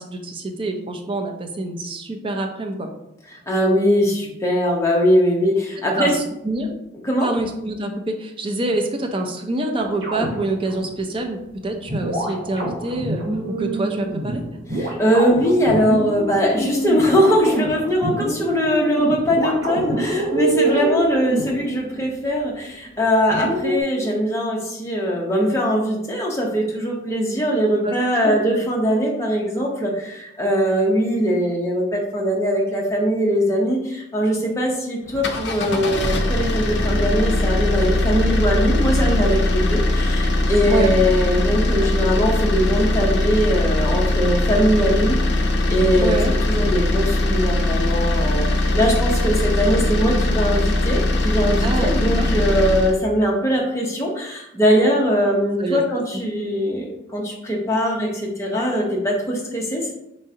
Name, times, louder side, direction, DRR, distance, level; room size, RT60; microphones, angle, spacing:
voice 1, 0.0-2.9 5.9-6.7 7.2-14.4 20.6-20.9 27.8-27.9 28.2-28.4 40.7-41.0 46.0-46.3 51.6-52.3 55.6-55.8, right 2 dB, 25° right, 3 dB, 0.5 m, -26 dB
voice 2, 3.5-6.1 7.0-7.3 14.7-45.2 45.7-59.9, equal, 15° left, -2 dB, 0.8 m, -21 dB
sound 1, 9.7-10.9 11.9-22.1 23.3-23.8, right 1 dB, 70° right, 1.4 m, -26 dB
sound 2, 35.1-53.0, left 2 dB, 60° left, 0.5 m, -20 dB
4.2 x 3.6 x 2.8 m, 0.84 s
head